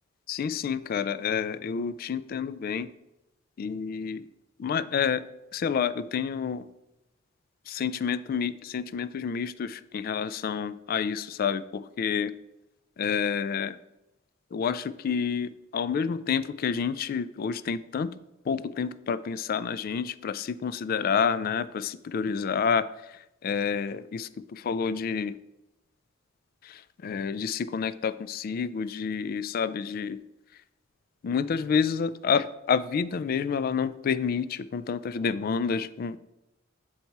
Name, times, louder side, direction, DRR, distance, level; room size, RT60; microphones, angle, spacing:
voice 1, 0.3-2.9 3.6-4.3 4.6-5.2 5.5-6.7 7.7-12.3 13.0-13.8 14.5-18.1 18.5-22.9 23.4-25.3 26.6-30.2 31.2-36.2, left 6 dB, 45° left, 16 dB, 0.3 m, -29 dB
7.9 x 4.1 x 4.6 m, 0.92 s
head